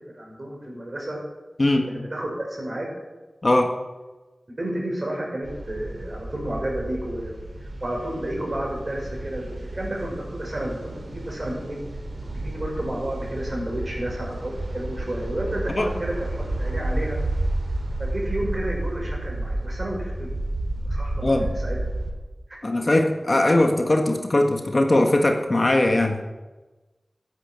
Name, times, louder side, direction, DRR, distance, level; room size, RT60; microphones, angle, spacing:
voice 1, 0.1-1.2 1.9-2.9 4.6-11.8 12.4-17.2 18.0-21.8 22.5-22.6 23.5-23.6, right 1 dB, 40° right, -1 dB, 5.7 m, -31 dB
sound 1, 5.4-22.1, right 1 dB, 65° right, 3.3 m, -31 dB
voice 2, 22.6-26.2, left 1 dB, 40° left, 4 dB, 1.5 m, -20 dB
14.5 x 9.8 x 7.6 m, 1.2 s
wide cardioid pair, 75°, 0 cm